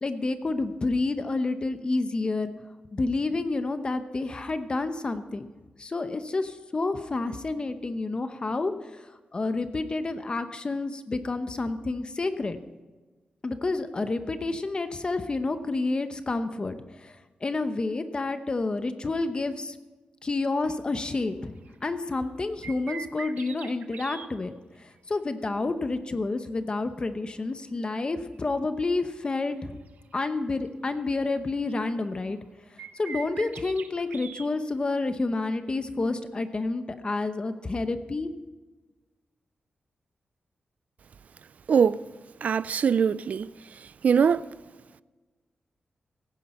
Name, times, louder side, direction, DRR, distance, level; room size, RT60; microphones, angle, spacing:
voice 1, 0.0-2.5 2.9-5.5 5.8-12.6 13.4-19.8 20.2-21.5 21.8-29.8 30.1-32.4 32.7-38.3, left 3 dB, 35° left, 0.8 m, -29 dB
sound 1, 20.6-20.7 21.2-21.3 21.6-21.8 22.4-24.3 28.3-28.4 29.2-30.1 30.5-30.6 31.0-31.1 31.3-32.3 32.8-34.5, right 6 dB, 80° right, 0.9 m, -42 dB
voice 2, 41.7-42.0 42.4-43.5 44.0-44.4, right 6 dB, 65° right, 0.3 m, -22 dB
17.0 x 10.0 x 4.3 m
wide cardioid pair, 95°, 3 cm